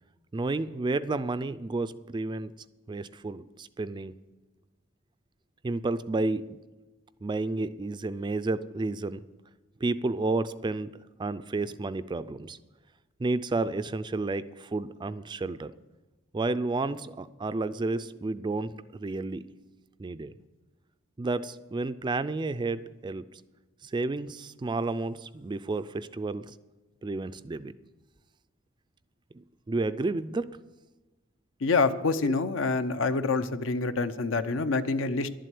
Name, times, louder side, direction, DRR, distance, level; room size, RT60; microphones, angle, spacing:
voice 1, 0.3-2.5 2.9-4.1 5.6-6.6 7.2-9.2 9.8-10.9 11.2-12.6 13.2-15.7 16.3-19.5 20.0-20.3 21.2-23.2 23.8-26.5 27.0-27.7 29.3-30.5 32.2-32.3, right 3 dB, 25° right, 14 dB, 0.3 m, -31 dB
voice 2, 31.6-35.3, left 4 dB, 70° left, 11 dB, 0.7 m, -26 dB
11.5 x 7.7 x 8.2 m, 1.1 s
head